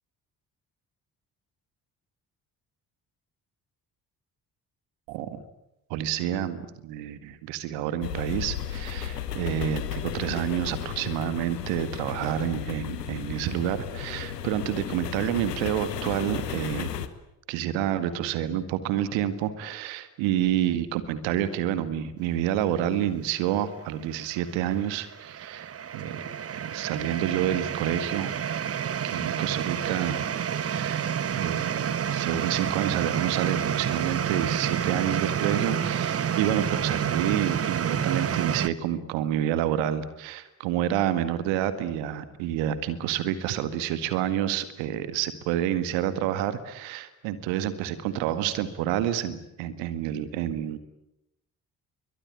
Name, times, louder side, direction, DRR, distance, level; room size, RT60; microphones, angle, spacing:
voice 1, 5.1-5.4 5.9-16.9 17.5-26.2 26.5-28.3 29.0-30.3 30.6-50.8, right 11 dB, 65° right, 12 dB, 2.0 m, -29 dB
sound 1, 8.0-17.1, left 9 dB, 85° left, 1.3 m, -34 dB
sound 2, 24.0-38.7, right 8 dB, 30° right, 0.9 m, -29 dB
29.0 x 23.0 x 8.7 m, 0.88 s
figure-of-eight pair, 40°, 47 cm